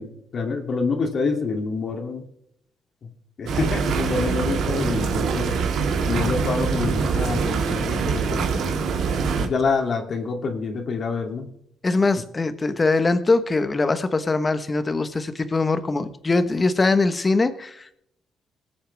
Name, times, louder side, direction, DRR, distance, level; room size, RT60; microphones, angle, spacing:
voice 1, 0.0-2.2 3.4-5.6 6.0-8.9 9.4-11.5, left 4 dB, 55° left, 4 dB, 2.6 m, -27 dB
sound 1, 3.5-9.5, right 5 dB, 75° right, 2.2 m, -24 dB
voice 2, 11.8-17.9, left 3 dB, 25° left, 11 dB, 1.2 m, -22 dB
19.5 x 8.6 x 3.5 m, 0.71 s
cardioid pair, 90°, 0 cm